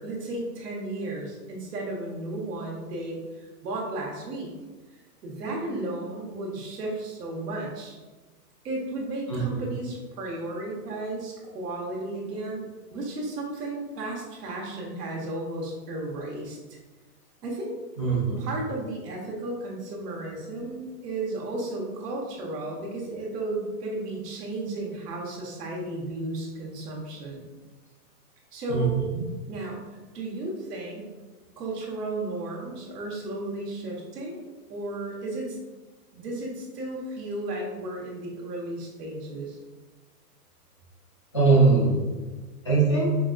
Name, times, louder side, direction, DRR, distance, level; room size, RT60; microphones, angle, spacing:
voice 1, 0.0-4.5 5.2-8.0 8.6-16.6 17.4-17.7 18.4-27.5 28.5-29.0 29.5-29.8 30.1-31.0 31.6-34.4 34.7-35.6 36.1-39.6, right 2 dB, 75° right, -2 dB, 1.3 m, -34 dB
voice 2, 9.3-9.6 18.0-18.5 28.7-28.9 41.3-42.0 42.6-43.1, right 3 dB, 20° left, -7 dB, 0.4 m, -21 dB
5.3 x 2.5 x 2.4 m, 1.2 s
hypercardioid pair, 165°, 47 cm